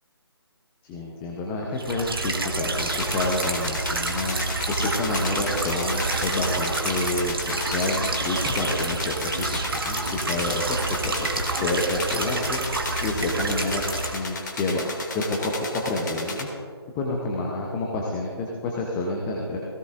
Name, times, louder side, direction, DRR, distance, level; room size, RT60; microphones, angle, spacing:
voice 1, 0.8-4.4 4.7-11.1 11.6-13.8 14.1-14.9 15.1-16.5 16.9-19.6, left 2 dB, 10° left, -1 dB, 0.7 m, -28 dB
sound 1, 1.8-14.2, right 3 dB, 55° right, 1.5 m, -28 dB
sound 2, 2.8-16.4, left 3 dB, 40° left, 2.2 m, -34 dB
18.0 x 16.5 x 2.5 m, 2.3 s
figure-of-eight pair, 150°, 14 cm